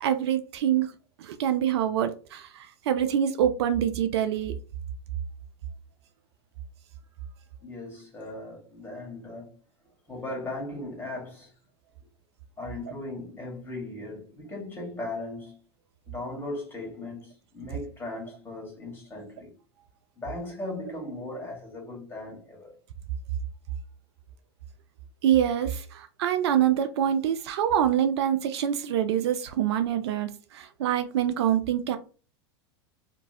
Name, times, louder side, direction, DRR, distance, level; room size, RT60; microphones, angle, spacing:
voice 1, 0.0-0.9 1.2-4.5 25.2-32.0, right 10 dB, 65° right, 0.4 m, -25 dB
voice 2, 7.6-9.6 10.1-11.5 12.6-15.6 16.1-19.5 20.2-22.8, left 2 dB, 15° left, 1.6 m, -38 dB
2.7 x 2.7 x 2.7 m
hypercardioid pair, 90°, 15 cm